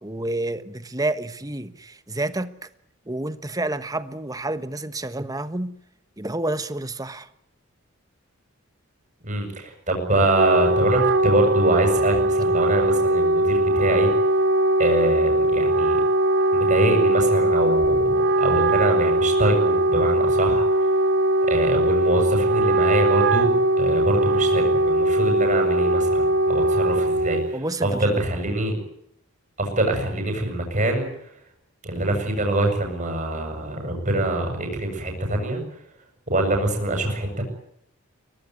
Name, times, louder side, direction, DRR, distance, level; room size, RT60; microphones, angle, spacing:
voice 1, 0.0-2.7 3.1-5.8 6.2-7.3 27.5-28.2, right 2 dB, 15° right, 12 dB, 1.2 m, -29 dB
voice 2, 9.2-14.1 14.8-16.0 16.5-20.9 21.5-28.8 29.6-31.1 31.8-35.6 36.3-37.4, right 1 dB, 35° right, 3 dB, 7.5 m, -24 dB
Wind instrument woodwind instrument, 10.1-27.6, right 1 dB, 50° right, 0.9 m, -20 dB
23.5 x 19.5 x 9.6 m, 0.74 s
head